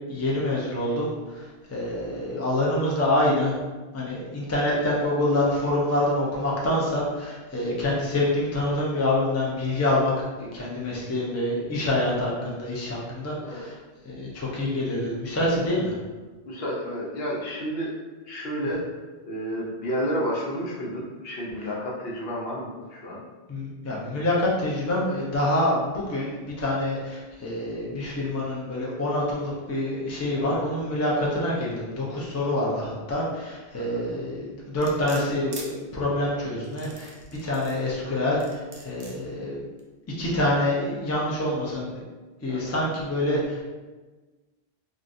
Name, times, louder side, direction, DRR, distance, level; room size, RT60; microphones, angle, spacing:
voice 1, 0.1-3.5 3.9-10.1 10.4-13.7 14.1-16.0 23.5-37.1 37.4-39.6 40.2-42.0 42.4-43.6, left 1 dB, 20° left, -5 dB, 0.4 m, -26 dB
voice 2, 16.5-17.9 18.2-18.8 19.2-23.2 33.8-34.0 42.5-42.8, equal, 65° left, -3 dB, 0.9 m, -31 dB
sound 1, 34.8-35.7 36.6-37.8 38.4-39.2 39.8-39.9, right 3 dB, 60° right, 0.7 m, -42 dB
3.7 x 2.2 x 2.5 m, 1.3 s
omnidirectional pair, 1.1 m